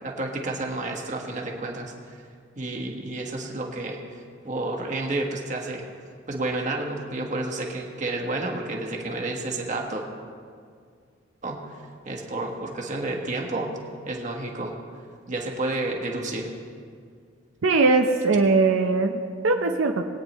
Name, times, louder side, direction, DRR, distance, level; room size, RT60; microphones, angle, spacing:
voice 1, 0.0-1.9 2.6-5.8 6.3-10.1 11.4-11.8 12.0-13.7 14.1-14.7 15.3-16.5, right 2 dB, 40° right, 1 dB, 1.4 m, -30 dB
voice 2, 17.6-20.0, right 3 dB, 85° right, 4 dB, 0.7 m, -21 dB
21.5 x 9.4 x 3.1 m, 2.2 s
head